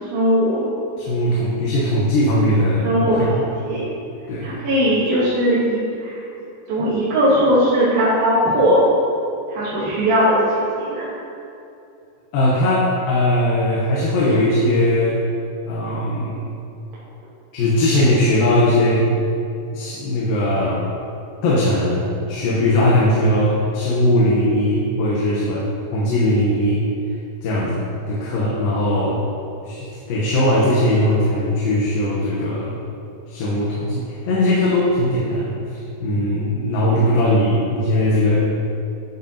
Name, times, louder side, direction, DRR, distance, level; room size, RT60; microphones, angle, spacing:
voice 1, 0.1-0.6 2.8-3.9 4.4-6.2 6.7-8.8 9.5-11.1, equal, 80° right, -10 dB, 3.3 m, -19 dB
voice 2, 1.0-2.9 4.3-4.6 12.3-15.2 15.7-16.5 17.5-19.1 19.7-20.8 21.4-26.8 27.4-29.2 29.6-32.8 33.3-38.5, left 1 dB, 80° left, -6 dB, 2.9 m, -19 dB
11.5 x 7.8 x 2.8 m, 2.7 s
omnidirectional pair, 4.1 m